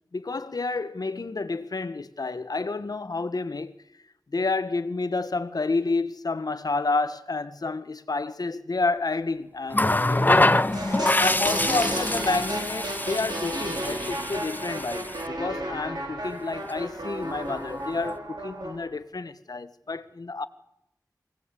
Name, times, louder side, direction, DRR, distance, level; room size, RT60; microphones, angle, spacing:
voice 1, 0.1-3.7 4.3-10.6 11.2-20.5, left 3 dB, 65° left, 1.4 m, -29 dB
Water tap faucet, 9.7-15.3 16.5-16.7, left 2 dB, 25° left, 0.9 m, -25 dB
sound 1, 10.7-18.8, right 1 dB, 80° right, 5.9 m, -33 dB
24.5 x 18.0 x 8.5 m
wide cardioid pair, 60°, 7 cm